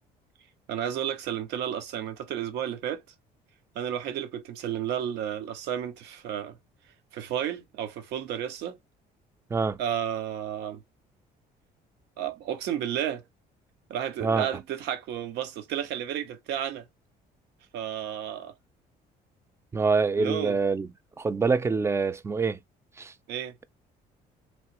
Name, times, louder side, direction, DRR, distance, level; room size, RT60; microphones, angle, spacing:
voice 1, 0.7-3.0 3.7-6.6 7.1-8.8 9.8-10.8 12.2-13.2 13.9-16.9 17.7-18.5 20.2-20.6 23.3-23.6, right 10 dB, 85° right, 0.7 m, -32 dB
voice 2, 19.7-20.9 21.2-22.6 23.0-23.1, right 4 dB, 15° right, 0.3 m, -25 dB
3.1 x 2.8 x 2.9 m
cardioid pair, 110°, 17 cm